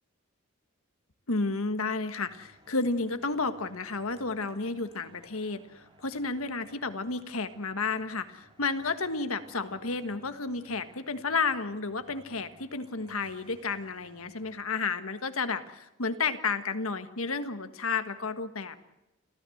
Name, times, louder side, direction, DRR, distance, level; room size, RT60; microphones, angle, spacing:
voice 1, 1.3-18.8, left 4 dB, 75° left, 10 dB, 1.5 m, -32 dB
sound 1, 2.3-14.6, right 1 dB, 25° right, 3.7 m, -60 dB
29.0 x 14.5 x 7.8 m, 0.92 s
head